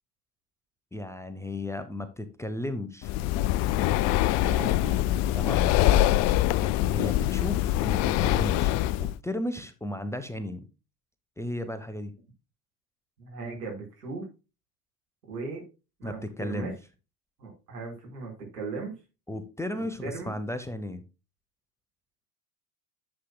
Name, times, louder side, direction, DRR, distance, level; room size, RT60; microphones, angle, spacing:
voice 1, 0.9-3.1 5.3-5.9 6.6-10.6 11.4-12.1 16.0-16.7 19.3-21.0, left 1 dB, 5° left, 10 dB, 1.0 m, -35 dB
Breathing, 3.0-9.1, left 14 dB, 35° left, 0.4 m, -24 dB
voice 2, 4.4-5.0 13.2-14.3 15.3-15.6 16.0-16.7 17.4-18.9 19.8-20.3, right 4 dB, 75° right, 0 dB, 4.6 m, -38 dB
11.5 x 7.7 x 2.2 m, 0.29 s
figure-of-eight pair, 70°, 48 cm